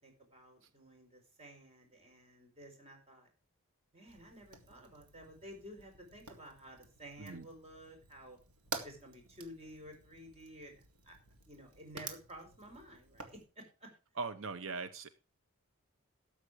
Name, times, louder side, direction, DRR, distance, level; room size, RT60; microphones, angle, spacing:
voice 1, 0.0-3.3 3.9-8.4 8.7-11.1 11.5-13.9 14.7-14.8, equal, 30° right, 3 dB, 4.4 m, -53 dB
Fire, 4.1-13.4, right 4 dB, 80° right, 2.1 m, -50 dB
voice 2, 14.2-15.1, right 4 dB, 60° right, 12 dB, 0.8 m, -40 dB
13.0 x 7.6 x 5.0 m, 0.34 s
head